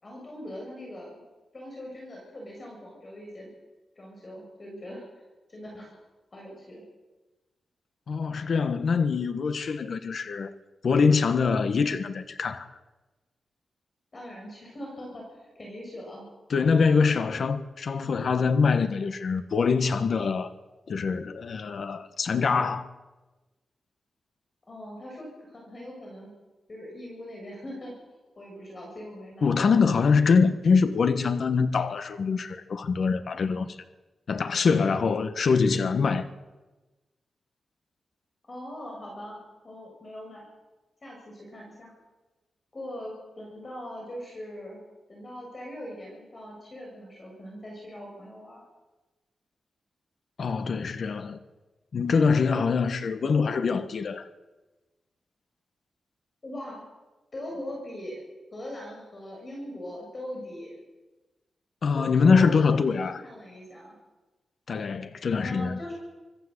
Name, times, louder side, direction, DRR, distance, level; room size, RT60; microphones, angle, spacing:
voice 1, 0.0-1.2 1.5-3.5 4.0-5.1 5.5-6.0 6.3-6.8 14.1-16.3 24.7-26.3 26.7-28.0 28.4-29.5 38.5-40.5 41.0-41.9 42.7-44.8 45.1-48.6 56.4-56.9 57.3-58.2 58.5-60.8 61.9-64.0 65.3-65.9, left 1 dB, 35° left, 7.3 m, -41 dB
voice 2, 8.1-10.5 10.8-12.7 16.5-20.5 20.9-22.9 29.4-33.7 34.3-36.3 50.4-51.4 51.9-54.3 61.8-63.2 64.7-65.8, left 5 dB, 60° left, 1.3 m, -24 dB
25.5 x 14.5 x 8.1 m
wide cardioid pair, 125°, 0 cm